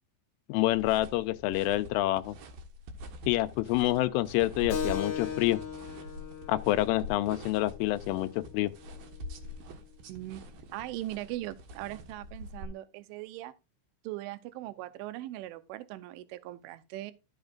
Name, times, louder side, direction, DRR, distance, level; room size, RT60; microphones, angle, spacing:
voice 1, 0.5-2.4 3.3-5.6 6.5-8.7, left 16 dB, 85° left, 3.1 m, -27 dB
sound 1, 0.6-12.6, left 1 dB, 65° right, 2.5 m, -45 dB
Keyboard (musical), 4.7-9.8, left 7 dB, 65° left, 1.9 m, -39 dB
voice 2, 10.1-10.5 10.7-13.5 14.0-17.1, right 16 dB, 80° right, 3.2 m, -40 dB
14.0 x 8.0 x 2.5 m
omnidirectional pair, 5.7 m